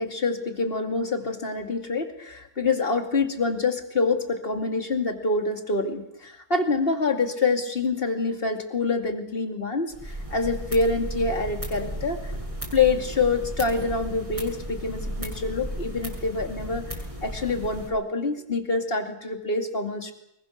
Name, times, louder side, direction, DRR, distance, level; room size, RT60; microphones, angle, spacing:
voice 1, 0.0-12.3 12.7-20.1, left 3 dB, 40° left, 5 dB, 2.6 m, -26 dB
sound 1, 9.9-17.9, right 1 dB, 20° right, 6.7 m, -35 dB
24.5 x 22.0 x 6.5 m, 0.81 s
omnidirectional pair, 1.5 m